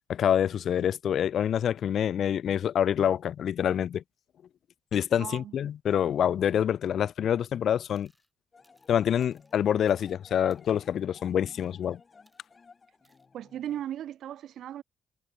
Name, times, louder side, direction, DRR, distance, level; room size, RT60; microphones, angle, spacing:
voice 1, 0.1-4.0 4.9-8.1 8.9-12.0, left 9 dB, 65° left, 0.4 m, -26 dB
voice 2, 5.2-5.5 13.3-14.8, right 11 dB, 75° right, 1.1 m, -37 dB
sound 1, 8.0-8.3 8.6-10.2 10.5-11.0 11.5-11.8 12.3-12.5 13.0-13.3, right 1 dB, 5° right, 4.5 m, -68 dB
sound 2, 8.5-13.8, left 4 dB, 35° left, 2.6 m, -56 dB
cardioid pair, 90°, 0 cm